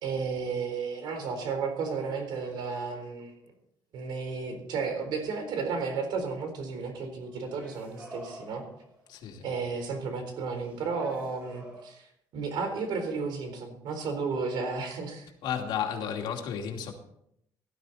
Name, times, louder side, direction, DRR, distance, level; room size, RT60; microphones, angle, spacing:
voice 1, 0.0-3.3 3.9-8.6 9.4-12.1 12.3-15.3, right 4 dB, 70° right, 5 dB, 4.1 m, -33 dB
sound 1, 7.3-9.1 10.6-11.9, equal, 20° right, 7.0 m, -48 dB
voice 2, 9.1-9.5 15.4-16.9, left 8 dB, 75° left, 2 dB, 2.6 m, -33 dB
17.0 x 12.5 x 4.2 m, 0.75 s
cardioid pair, 155°, 8 cm